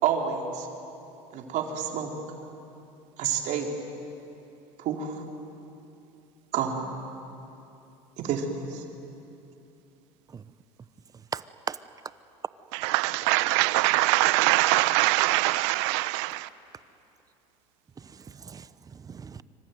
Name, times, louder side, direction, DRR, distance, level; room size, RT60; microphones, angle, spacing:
voice 1, 0.0-0.7 1.3-2.1 3.2-3.8 4.8-5.3 6.5-6.8 8.2-8.8, right 7 dB, 55° right, 3.9 m, -29 dB
voice 2, 11.3-11.8 18.0-19.4, right 6 dB, 25° right, 0.9 m, -38 dB
voice 3, 12.8-16.5, right 20 dB, 80° right, 0.8 m, -23 dB
26.0 x 24.5 x 9.4 m
supercardioid pair, 110°, 15 cm